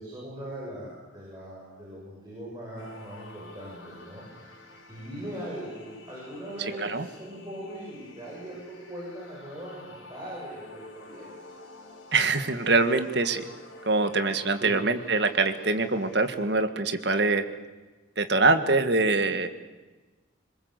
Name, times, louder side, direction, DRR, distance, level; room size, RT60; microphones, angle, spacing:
voice 1, 0.0-4.6 4.9-11.6 14.6-14.8, right 1 dB, 20° right, -5 dB, 7.7 m, -40 dB
sound 1, 2.8-16.4, left 2 dB, 75° left, 5.5 m, -49 dB
voice 2, 6.6-7.1 12.1-13.5 13.8-17.4 18.2-19.5, right 3 dB, 55° right, 9 dB, 1.7 m, -24 dB
25.5 x 22.0 x 8.1 m, 1.2 s
head